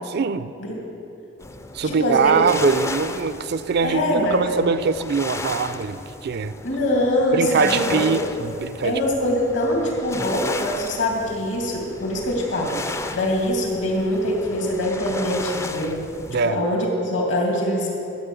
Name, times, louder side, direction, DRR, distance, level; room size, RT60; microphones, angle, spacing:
voice 1, 0.1-0.5 1.7-6.5 7.3-9.0 16.3-16.6, right 5 dB, 55° right, 14 dB, 0.4 m, -22 dB
sound 1, 1.4-16.4, left 2 dB, 15° left, 0.4 m, -34 dB
voice 2, 1.8-2.4 3.8-4.5 6.6-8.1 8.8-16.0 16.4-17.9, left 1 dB, 70° left, -1 dB, 2.7 m, -23 dB
12.5 x 8.2 x 7.0 m, 2.7 s
head